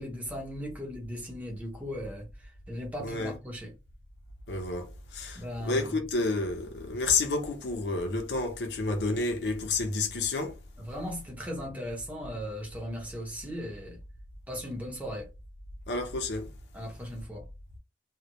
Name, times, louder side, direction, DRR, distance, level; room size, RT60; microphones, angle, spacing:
voice 1, 0.0-3.7 5.4-6.0 10.8-14.0 14.5-15.3 16.7-17.5, equal, 10° right, 0.6 m, -37 dB
voice 2, 3.0-3.3 4.5-10.6 15.9-16.5, left 3 dB, 75° left, 0.5 m, -30 dB
2.2 x 2.0 x 2.8 m
head